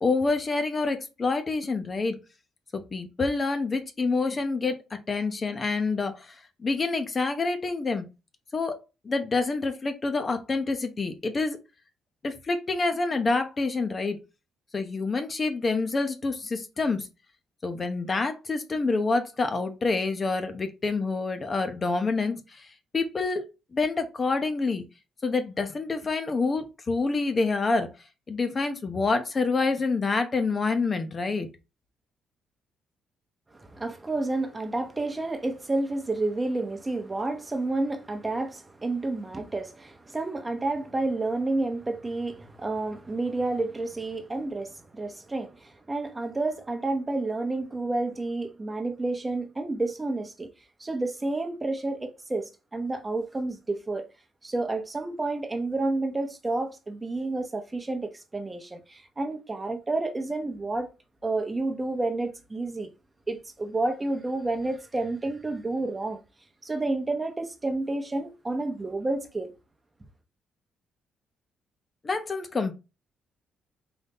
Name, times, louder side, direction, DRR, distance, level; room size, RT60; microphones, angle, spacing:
voice 1, 0.0-2.2 2.7-4.8 5.1-6.4 6.6-8.1 8.5-8.8 9.0-11.6 12.2-14.2 14.7-17.1 17.6-22.7 22.9-24.8 25.2-27.9 28.3-31.5 72.0-72.7, left 3 dB, 35° left, 0.7 m, -27 dB
voice 2, 33.5-50.5 50.8-54.0 54.4-60.9 61.2-62.9 63.3-66.2 66.6-69.5, right 2 dB, 20° right, 0.8 m, -30 dB
3.9 x 2.7 x 3.6 m
cardioid pair, 90°, 0 cm